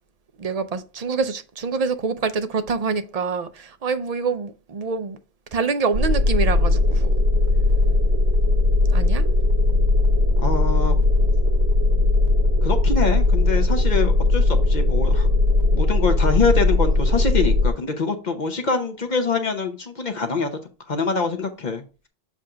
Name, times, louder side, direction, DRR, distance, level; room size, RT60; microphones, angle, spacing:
voice 1, 0.4-5.2 5.5-7.2 8.9-9.2, right 5 dB, 45° right, 0.6 m, -26 dB
sound 1, 5.9-17.7, left 2 dB, 85° right, 1.0 m, -18 dB
voice 2, 10.4-11.0 12.6-15.3 15.7-20.5 20.9-21.8, left 4 dB, 50° left, 0.8 m, -24 dB
7.2 x 2.5 x 5.6 m
omnidirectional pair, 1.0 m